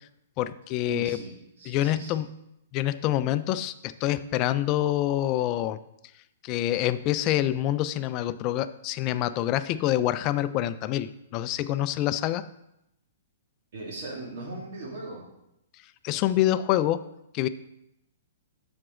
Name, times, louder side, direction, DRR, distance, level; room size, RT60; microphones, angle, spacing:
voice 1, 0.4-1.2 1.7-2.3 2.7-5.8 6.4-12.4 16.0-17.0 17.3-17.5, left 13 dB, 35° left, 13 dB, 0.4 m, -26 dB
voice 2, 0.9-2.2 6.6-6.9 13.7-15.3, right 2 dB, 60° right, 0 dB, 2.4 m, -39 dB
7.6 x 6.2 x 3.8 m, 0.83 s
hypercardioid pair, 125°, 0 cm